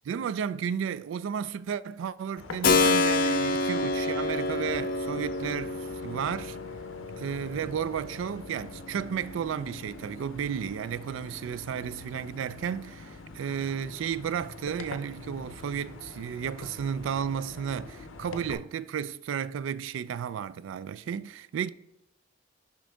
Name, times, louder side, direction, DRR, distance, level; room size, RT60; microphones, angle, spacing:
voice 1, 0.1-6.6 7.2-21.7, right 8 dB, 75° right, 0.3 m, -33 dB
sound 1, 2.4-18.5, left 3 dB, 85° left, 0.6 m, -45 dB
Keyboard (musical), 2.6-11.2, left 3 dB, 45° left, 0.4 m, -29 dB
6.3 x 5.2 x 3.4 m
head